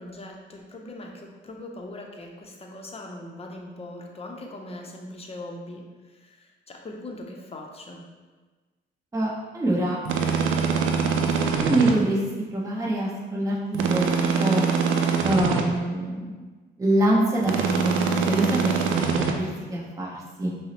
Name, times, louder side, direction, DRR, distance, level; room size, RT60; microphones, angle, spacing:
voice 1, 0.0-8.1, left 1 dB, 30° left, 1 dB, 0.6 m, -40 dB
voice 2, 9.1-10.0 11.5-12.2 12.5-14.1 14.4-14.6 15.2-16.2 16.8-18.7 18.9-20.5, right 1 dB, 15° right, -5 dB, 0.8 m, -25 dB
sound 1, 10.1-11.9 13.7-15.6 17.4-19.3, right 5 dB, 80° right, 0.4 m, -23 dB
5.5 x 2.1 x 2.8 m, 1.3 s
cardioid pair, 90°, 20 cm